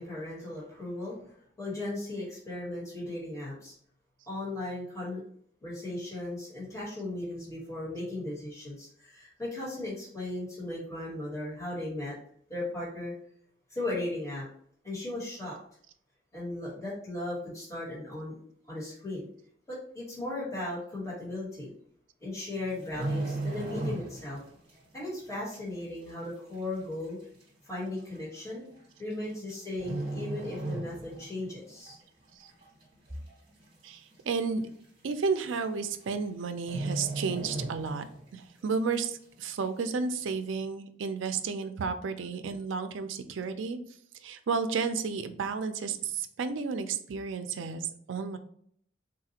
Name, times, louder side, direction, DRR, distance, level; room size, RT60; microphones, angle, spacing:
voice 1, 0.0-3.7 4.3-5.2 5.6-12.2 12.5-13.1 13.7-14.4 14.8-15.6 16.3-18.4 18.7-19.3 19.7-21.7 22.2-24.4 24.9-27.2 27.7-28.6 29.0-32.0, left 2 dB, 15° left, -7 dB, 1.4 m, -37 dB
sound 1, 22.7-24.4 24.7-25.0 25.5-25.6 26.5-26.6 26.8-26.9 27.8-28.0 29.1-29.5 29.8-31.4 31.7-31.9 32.4-32.9 33.3-33.4 33.6-33.7 34.1-34.2 35.2-35.3 35.5-35.8 36.1-36.2 36.6-38.3 38.6-38.7, right 2 dB, 30° right, 1.3 m, -35 dB
voice 2, 33.8-34.6 35.0-38.0 38.3-43.8 44.2-48.4, right 5 dB, 90° right, 9 dB, 0.4 m, -32 dB
4.0 x 2.4 x 2.8 m, 0.64 s
head